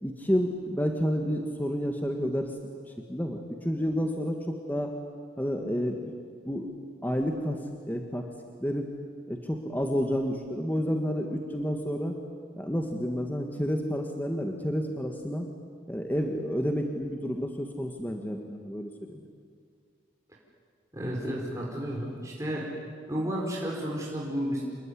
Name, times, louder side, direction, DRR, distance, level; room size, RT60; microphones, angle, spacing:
voice 1, 0.0-2.6 2.9-4.9 5.4-6.1 6.4-6.7 7.0-7.6 7.9-8.3 8.6-8.9 9.3-12.2 12.6-15.5 15.9-19.2, equal, 10° left, 3 dB, 1.6 m, -30 dB
voice 2, 20.9-22.7 23.1-24.6, equal, 15° right, -3 dB, 4.7 m, -32 dB
27.5 x 21.0 x 10.0 m, 2.1 s
head